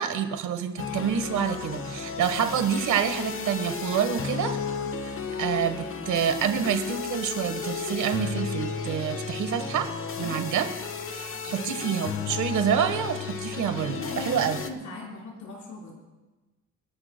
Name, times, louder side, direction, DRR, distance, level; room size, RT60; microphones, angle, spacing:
voice 1, 0.0-4.6 5.0-9.9 10.2-10.7 11.1-14.6, right 8 dB, 75° right, 8 dB, 1.4 m, -27 dB
sound 1, 0.8-14.7, left 6 dB, 45° left, 1.2 m, -33 dB
voice 2, 10.1-10.5 11.5-11.8 13.9-15.9, left 2 dB, 75° left, -3 dB, 4.9 m, -39 dB
28.5 x 11.5 x 2.2 m, 1.2 s
cardioid pair, 90°, 30 cm